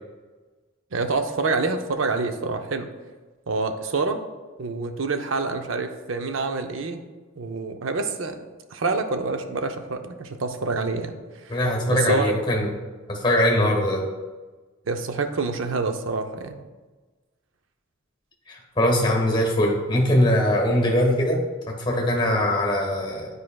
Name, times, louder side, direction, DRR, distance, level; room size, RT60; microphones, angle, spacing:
voice 1, 0.9-2.9 3.5-4.2 4.6-7.0 7.4-8.3 8.7-11.2 11.4-11.6 11.9-12.3 14.9-16.6, right 3 dB, 65° right, 7 dB, 0.5 m, -27 dB
voice 2, 11.5-12.7 13.1-14.0 18.5-23.3, left 1 dB, 25° left, 1 dB, 1.2 m, -22 dB
9.7 x 4.8 x 2.3 m, 1.3 s
head